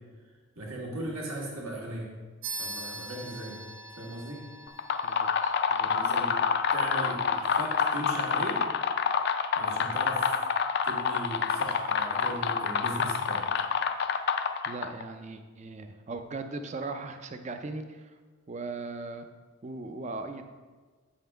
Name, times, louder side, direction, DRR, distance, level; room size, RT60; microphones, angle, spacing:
voice 1, 0.6-2.1 2.6-3.6 3.9-4.5 5.8-6.4 6.7-8.6 9.5-10.4 10.8-13.5, right 1 dB, 80° right, -3 dB, 1.7 m, -38 dB
sound 1, 2.4-12.4, right 2 dB, 65° right, 1.3 m, -46 dB
sound 2, 4.7-15.0, left 6 dB, 50° left, 0.3 m, -28 dB
voice 2, 5.0-6.1 6.4-6.5 14.7-18.2 18.5-19.3 19.6-20.4, right 3 dB, 30° right, 7 dB, 0.4 m, -39 dB
8.3 x 5.6 x 3.4 m, 1.4 s
head